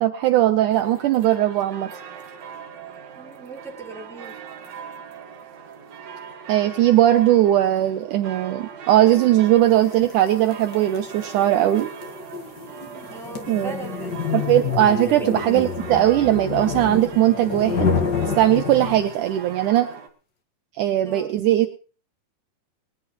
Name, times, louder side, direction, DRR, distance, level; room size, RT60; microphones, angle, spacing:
voice 1, 0.0-1.9 6.5-11.9 13.5-13.7 14.3-17.9 18.4-19.9 20.8-21.8, right 13 dB, 80° right, 7 dB, 1.8 m, -19 dB
sound 1, 0.7-20.1, right 6 dB, 50° right, 2.5 m, -40 dB
voice 2, 3.1-4.4 13.1-14.2 15.1-15.3 21.0-21.3, right 4 dB, ahead, -3 dB, 3.5 m, -38 dB
sound 2, 9.9-19.3, left 5 dB, 55° left, 1.1 m, -28 dB
21.5 x 11.5 x 3.1 m, 0.37 s
omnidirectional pair, 4.6 m